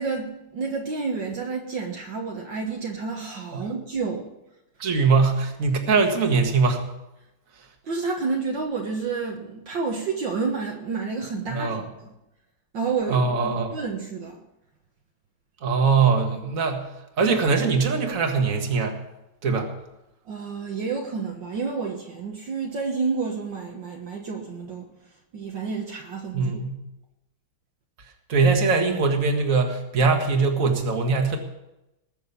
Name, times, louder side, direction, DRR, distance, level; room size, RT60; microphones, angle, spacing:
voice 1, 0.0-4.3 7.8-11.9 12.7-14.4 20.3-24.9 25.3-26.5, right 4 dB, 60° right, 2.0 m, -30 dB
voice 2, 4.8-6.8 11.5-11.8 13.1-13.7 15.6-16.9 17.2-18.9 19.4-19.7 26.3-26.8 28.3-31.4, right 4 dB, 40° right, 2.1 m, -22 dB
20.0 x 6.9 x 7.0 m
omnidirectional pair, 2.4 m